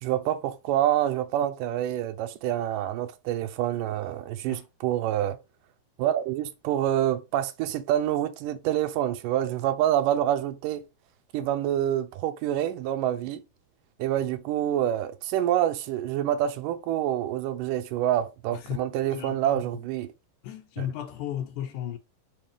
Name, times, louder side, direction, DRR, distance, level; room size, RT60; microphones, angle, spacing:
voice 1, 0.0-5.4 6.0-10.8 11.3-13.4 14.0-20.1 20.8-20.9, right 11 dB, 80° right, 2.2 m, -27 dB
voice 2, 19.1-19.6 20.4-22.0, left 10 dB, 75° left, 2.1 m, -34 dB
5.8 x 5.2 x 3.5 m
omnidirectional pair, 3.8 m